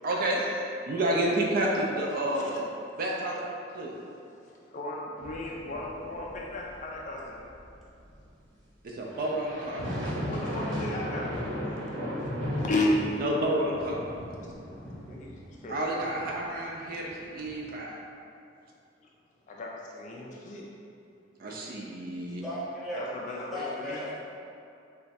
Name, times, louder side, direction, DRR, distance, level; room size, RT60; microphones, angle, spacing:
voice 1, 0.0-2.6 3.0-3.9 8.8-9.8 13.2-14.0 15.7-18.0 21.4-22.4, right 1 dB, 50° right, -2 dB, 0.4 m, -30 dB
voice 2, 4.1-7.4 10.3-11.3 11.8-11.9 12.2-12.3 12.6-12.9 14.4-14.5 14.8-15.8 19.5-20.7 22.3-22.4 22.9-24.0, left 2 dB, 40° left, -2 dB, 0.3 m, -35 dB
sound 1, 5.2-8.3 9.1-17.7, equal, 80° right, 1.1 m, -37 dB
voice 3, 22.4-23.0 23.5-24.2, left 1 dB, ahead, -10 dB, 0.9 m, -35 dB
3.1 x 2.3 x 4.1 m, 2.5 s
head